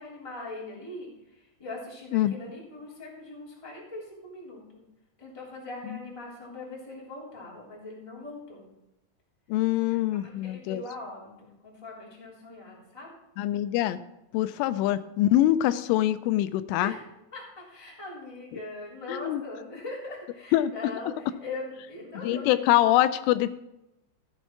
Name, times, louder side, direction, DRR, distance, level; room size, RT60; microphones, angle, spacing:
voice 1, 0.0-4.8 5.2-8.7 9.8-10.0 10.2-13.1 16.7-17.0 17.3-22.6, left 2 dB, 10° left, -4 dB, 2.4 m, -41 dB
voice 2, 9.5-10.8 13.4-14.0 14.3-16.9 19.1-19.4 20.5-20.7 22.2-23.6, left 14 dB, 85° left, 13 dB, 3.0 m, -24 dB
14.0 x 8.1 x 4.7 m, 0.92 s
omnidirectional pair, 5.5 m